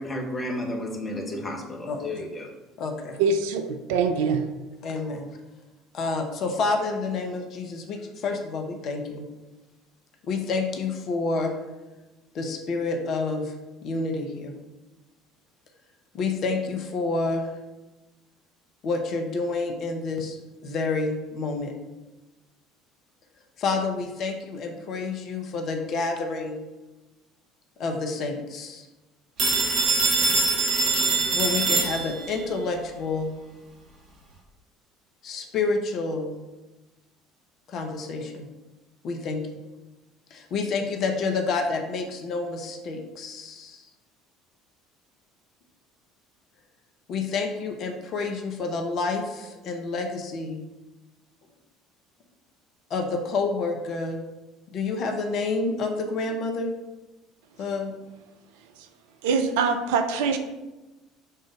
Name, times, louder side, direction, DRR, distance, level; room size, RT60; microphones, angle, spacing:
voice 1, 0.0-2.5, left 1 dB, 20° left, 1 dB, 1.4 m, -32 dB
voice 2, 1.9-2.2 2.8-3.2 4.8-5.3 5.9-9.2 10.2-11.5 12.3-13.5 13.8-14.5 16.1-17.5 18.8-21.7 23.6-26.7 27.8-28.9 31.3-33.3 35.2-36.3 37.7-38.5 39.0-39.4 40.3-43.8 47.1-50.6 52.9-54.2 54.7-56.7 57.6-57.9, left 3 dB, 45° left, 4 dB, 0.8 m, -29 dB
voice 3, 3.2-4.4 59.2-60.4, right 5 dB, 65° right, 7 dB, 0.5 m, -23 dB
Telephone, 29.4-32.4, right 3 dB, 45° right, 1.7 m, -23 dB
5.6 x 3.8 x 5.0 m, 1.1 s
figure-of-eight pair, 60°, 0 cm